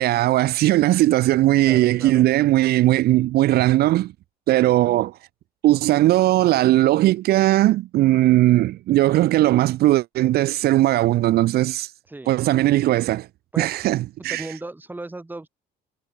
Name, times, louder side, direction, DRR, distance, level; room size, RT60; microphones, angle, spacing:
voice 1, 0.0-4.1 4.5-5.2 5.6-11.9 12.3-13.3 13.6-14.4, right 15 dB, 70° right, 0.7 m, -18 dB
voice 2, 1.6-2.3 12.1-12.4 13.5-15.5, right 2 dB, 10° right, 2.8 m, -37 dB
cardioid pair, 110°, 17 cm